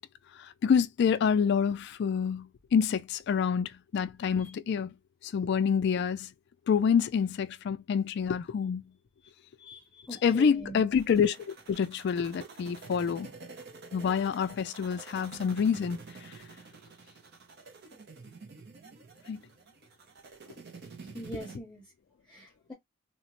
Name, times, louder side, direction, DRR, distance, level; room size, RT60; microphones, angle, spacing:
voice 1, 0.4-4.9 5.2-6.3 6.7-8.8 10.2-13.3 13.9-16.3 19.3-19.4, left 6 dB, 55° left, 0.3 m, -27 dB
voice 2, 9.6-10.8 21.1-21.8 22.3-22.7, right 1 dB, 5° left, 0.7 m, -43 dB
sound 1, 10.9-21.6, right 4 dB, 55° right, 0.7 m, -49 dB
2.9 x 2.1 x 2.9 m
head